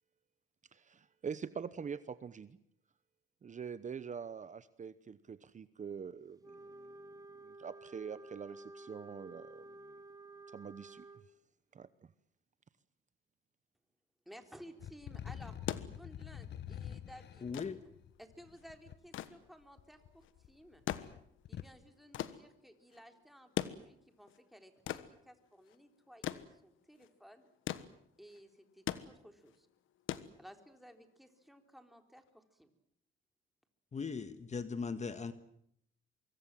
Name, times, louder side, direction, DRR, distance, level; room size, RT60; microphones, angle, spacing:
voice 1, 0.7-2.6 3.4-6.9 7.4-9.9 10.5-11.0 11.7-11.9, right 6 dB, 40° right, 15 dB, 1.0 m, -44 dB
Wind instrument woodwind instrument, 6.4-11.3, right 2 dB, 20° right, 1.9 m, -52 dB
voice 2, 14.3-15.6 15.9-17.5 18.2-20.8 21.5-27.5 28.2-29.7 30.4-32.7, equal, ahead, 6 dB, 3.8 m, -57 dB
sound 1, 14.8-19.0 19.8-20.5 20.8-21.8, left 9 dB, 60° left, 1.2 m, -47 dB
sound 2, 15.6-30.9 32.2-32.3, left 12 dB, 85° left, 1.4 m, -43 dB
voice 3, 17.4-17.8 33.9-35.3, left 5 dB, 35° left, 11 dB, 1.6 m, -39 dB
24.5 x 24.0 x 7.6 m, 0.72 s
cardioid pair, 90°, 20 cm